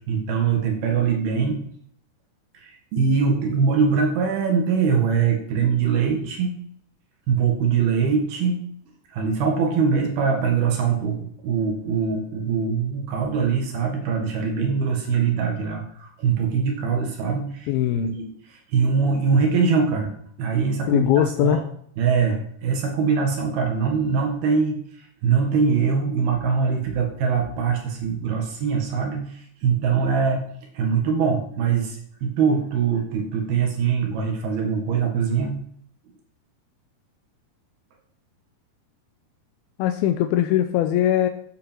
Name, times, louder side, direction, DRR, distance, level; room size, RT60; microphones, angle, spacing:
voice 1, 0.1-1.6 2.5-6.5 7.3-8.6 9.1-11.2 11.4-20.1 20.4-21.6 22.0-35.6, right 6 dB, 75° right, 1 dB, 3.7 m, -23 dB
voice 2, 17.7-18.1 20.9-21.6 29.9-30.0 39.8-41.3, left 12 dB, 80° left, 7 dB, 2.5 m, -21 dB
13.5 x 8.0 x 4.6 m, 0.64 s
omnidirectional pair, 4.5 m